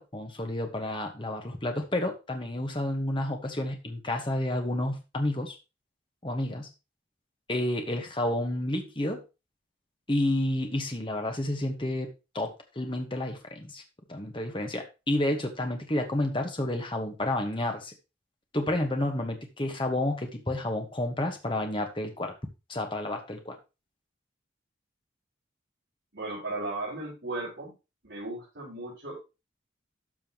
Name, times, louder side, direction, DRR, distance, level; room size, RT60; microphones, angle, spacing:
voice 1, 0.0-5.5 6.2-6.7 7.5-9.2 10.1-13.8 14.1-17.9 18.5-22.3 22.7-23.6, left 1 dB, 25° left, 4 dB, 1.2 m, -30 dB
voice 2, 26.1-27.7 28.0-29.2, right 2 dB, 65° right, -9 dB, 4.9 m, -36 dB
12.5 x 5.6 x 3.0 m, 0.28 s
head